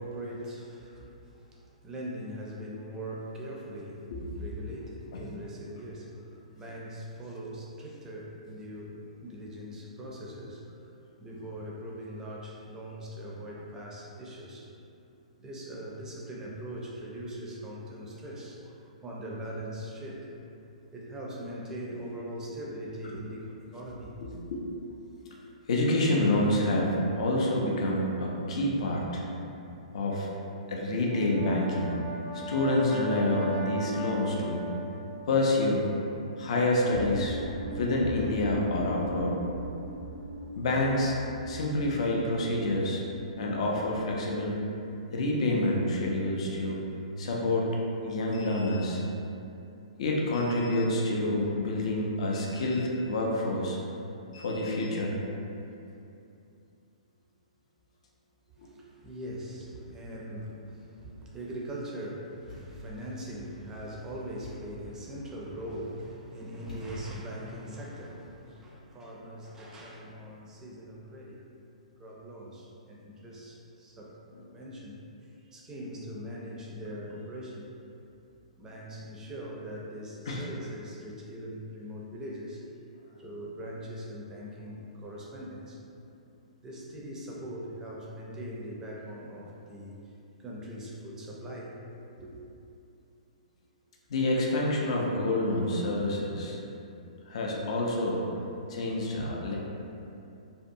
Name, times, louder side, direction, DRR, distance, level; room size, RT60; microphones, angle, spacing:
voice 1, 0.0-4.1 4.3-14.7 15.4-20.3 20.9-24.1 58.6-71.4 72.0-74.2 74.5-75.0 75.4-77.7 78.6-82.9 83.2-85.8 86.6-89.9 90.4-91.8 92.2-92.4, equal, 15° right, -4 dB, 0.4 m, -41 dB
voice 2, 24.2-24.6 25.7-29.2 29.9-30.4 30.7-32.0 32.5-34.6 35.3-35.9 36.4-37.4 37.8-39.4 40.6-41.2 41.4-43.0 43.4-44.6 45.1-46.8 47.2-47.7 48.0-49.0 50.0-53.8 54.3-55.2 58.6-58.7 80.3-80.5 94.1-96.6 97.3-98.2 98.7-99.6, left 1 dB, 55° left, -2 dB, 0.4 m, -28 dB
Brass instrument, 31.0-35.2, right 1 dB, 35° left, 0.8 m, -38 dB
sound 1, 36.9-44.4, equal, 80° right, 0.5 m, -40 dB
Thump thud, 62.5-63.0 64.4-64.9 66.7-67.3, left 2 dB, 85° left, 1.0 m, -44 dB
2.6 x 2.2 x 2.6 m, 2.7 s
figure-of-eight pair, 120°, 4 cm